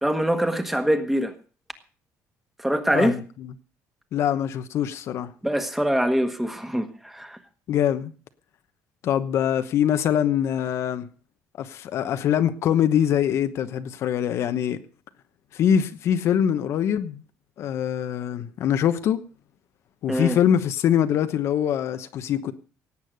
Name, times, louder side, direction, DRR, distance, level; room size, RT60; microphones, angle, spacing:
voice 1, 0.0-1.3 2.6-3.2 5.4-7.4 20.1-20.4, equal, 5° right, 1.5 m, -24 dB
voice 2, 2.9-3.5 4.1-5.3 7.7-8.1 9.0-11.1 11.6-14.8 15.5-17.2 17.6-19.2 20.0-22.5, left 9 dB, 55° left, 1.0 m, -23 dB
17.5 x 8.6 x 6.5 m
cardioid pair, 150°, 6 cm